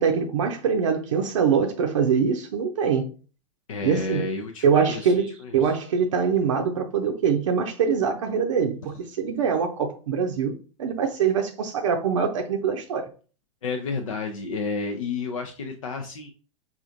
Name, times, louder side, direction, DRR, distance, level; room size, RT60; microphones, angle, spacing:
voice 1, 0.0-3.1 3.8-4.2 4.6-13.0, right 6 dB, 65° right, 0.6 m, -23 dB
voice 2, 3.7-5.1 5.4-5.7 13.6-16.3, left 4 dB, 70° left, 0.5 m, -31 dB
4.9 x 2.5 x 2.5 m
figure-of-eight pair, 90°, 18 cm